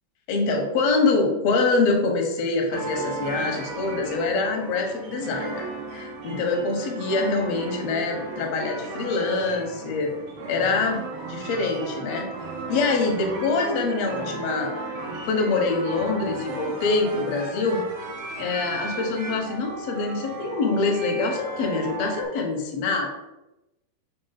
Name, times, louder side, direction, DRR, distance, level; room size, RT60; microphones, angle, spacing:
voice 1, 0.3-10.1 10.5-11.0 11.3-12.3 12.7-17.8 18.4-23.3, left 3 dB, 60° left, 2 dB, 1.8 m, -25 dB
sound 1, 2.7-22.2, right 3 dB, 70° right, 2.9 m, -35 dB
6.9 x 3.2 x 5.8 m, 0.95 s
omnidirectional pair, 4.4 m